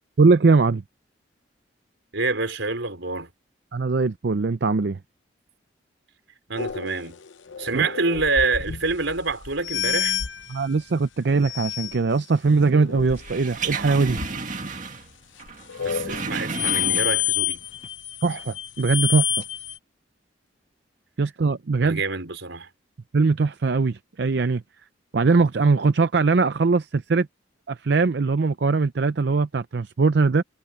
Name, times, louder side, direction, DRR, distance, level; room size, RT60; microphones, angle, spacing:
voice 1, 0.2-0.8 3.7-5.0 7.7-7.9 10.5-14.2 18.2-19.4 21.2-22.0 23.1-24.6 25.1-27.3 27.7-30.4, right 4 dB, 60° right, 0.5 m, -21 dB
voice 2, 2.1-3.3 6.5-7.2 7.6-10.2 15.8-17.6 21.8-22.7, right 3 dB, 80° right, 4.6 m, -26 dB
sound 1, 6.6-10.6 11.4-12.0 12.7-14.3 15.5-19.8, left 9 dB, 80° left, 0.8 m, -29 dB
sound 2, 13.2-15.1 15.4-17.4 17.8-17.9, right 4 dB, 40° right, 2.2 m, -32 dB
head